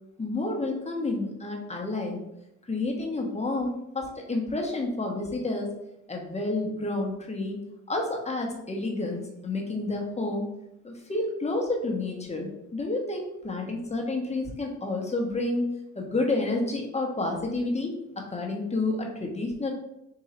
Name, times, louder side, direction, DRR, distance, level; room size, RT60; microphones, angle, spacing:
voice 1, 0.2-2.2 2.6-5.7 6.1-7.6 7.9-10.5 10.8-15.7 15.9-17.9 18.3-19.7, left 2 dB, 20° left, 0 dB, 1.1 m, -30 dB
3.8 x 2.8 x 4.3 m, 0.84 s
cardioid pair, 90°, 30 cm